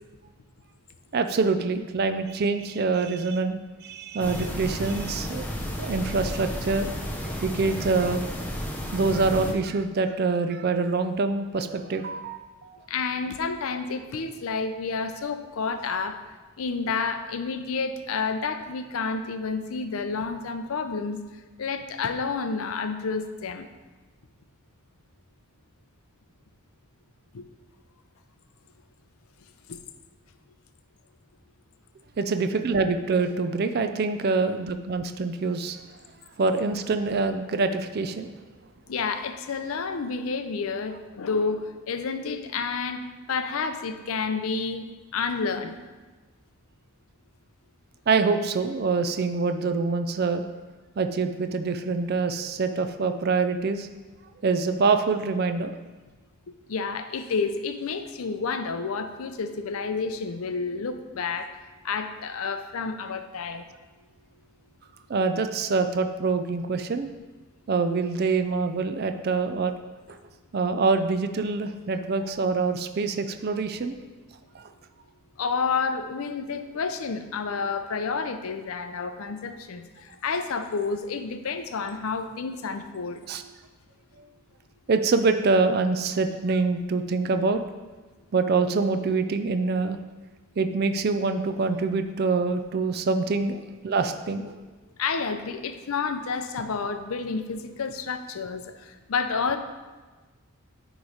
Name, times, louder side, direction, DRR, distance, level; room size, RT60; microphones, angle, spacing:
voice 1, 1.1-5.5 5.8-6.9 7.2-8.3 8.9-12.8 32.2-35.8 36.4-38.3 48.1-50.4 51.0-53.9 54.4-55.7 65.1-67.1 67.7-69.7 70.1-70.2 70.5-74.0 74.5-74.7 83.3-83.4 84.2-84.3 84.9-87.6 88.3-90.0 90.6-94.6, right 4 dB, 45° right, 8 dB, 0.4 m, -25 dB
sound 1, 4.2-9.5, equal, 5° left, 0.5 m, -32 dB
voice 2, 12.9-16.2 16.6-21.2 21.6-23.7 27.3-27.5 29.7-29.8 38.9-44.9 45.1-45.8 56.7-63.7 75.4-83.2 95.0-99.6, left 5 dB, 70° left, 8 dB, 0.5 m, -30 dB
9.3 x 3.1 x 4.9 m, 1.3 s
head